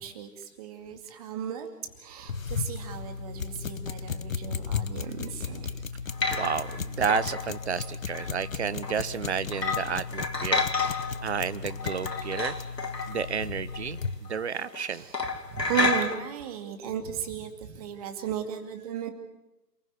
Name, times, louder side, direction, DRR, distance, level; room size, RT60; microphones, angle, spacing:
voice 1, 0.0-1.7 2.0-5.8 14.9-15.2 15.5-19.1, right 9 dB, 20° right, 7 dB, 2.3 m, -35 dB
sound 1, 2.3-14.2, left 5 dB, 55° left, 1.1 m, -35 dB
sound 2, 6.1-6.8 7.1-8.5 8.8-9.0 9.5-11.3 11.6-14.0 14.3-14.4 14.7-14.9 15.1-16.2, left 4 dB, 80° left, 3.0 m, -30 dB
voice 2, 6.3-10.7 11.2-12.6 13.1-15.1, right 7 dB, 40° right, 16 dB, 1.2 m, -31 dB
28.5 x 15.5 x 9.5 m, 1.0 s
figure-of-eight pair, 145°, 49 cm